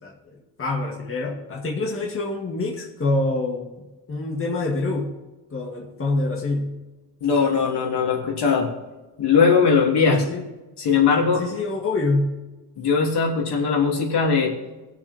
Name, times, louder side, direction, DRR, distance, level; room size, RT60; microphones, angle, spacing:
voice 1, 0.0-3.7 4.1-5.2 5.5-6.8 10.1-10.5 11.4-12.4, left 2 dB, 30° left, -1 dB, 2.0 m, -26 dB
voice 2, 7.2-8.7 9.2-10.2 10.8-11.4 12.8-14.5, left 5 dB, 60° left, 0 dB, 2.9 m, -20 dB
20.5 x 7.5 x 3.6 m, 1.2 s
cardioid pair, 115°, 45 cm